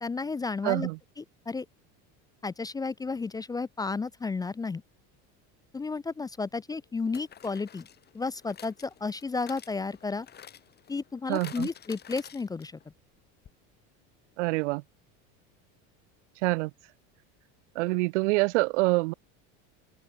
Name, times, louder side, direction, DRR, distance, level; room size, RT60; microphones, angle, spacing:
voice 1, 0.0-0.9 1.2-1.7 2.4-4.8 5.7-7.9 8.1-10.3 10.9-12.8, left 4 dB, 10° left, 0.6 m, -32 dB
voice 2, 0.6-1.0 11.3-11.7 14.4-14.8 16.4-16.7 17.8-19.1, right 24 dB, 90° right, 1.8 m, -26 dB
sound 1, 5.8-6.0 7.1-12.9 13.2-13.3 13.5-13.6, left 9 dB, 30° left, 4.3 m, -50 dB
open air
cardioid pair, 150°, 34 cm